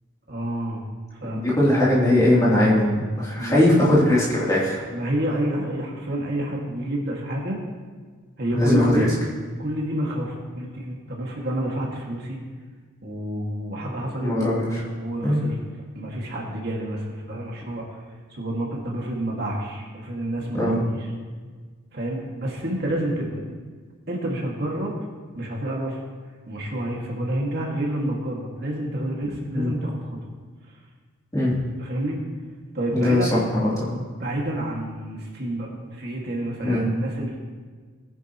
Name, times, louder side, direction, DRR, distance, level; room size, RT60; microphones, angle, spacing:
voice 1, 0.3-0.8 1.1-1.6 1.8-1.9 3.4-3.8 4.9-7.6 8.4-9.1 9.6-12.4 13.0-14.4 14.7-15.6 15.9-18.0 18.3-21.1 21.9-23.4 24.1-24.9 25.3-26.0 26.5-30.0 31.8-32.2 32.7-33.3 34.2-37.4, right 1 dB, 50° right, -2 dB, 2.1 m, -29 dB
voice 2, 1.4-4.8 8.5-9.0 14.2-14.8 15.2-15.4 20.5-20.8 29.5-29.7 31.3-31.5 32.9-34.0 36.6-36.8, left 1 dB, 15° left, -7 dB, 3.1 m, -20 dB
19.0 x 10.5 x 3.1 m, 1.5 s
head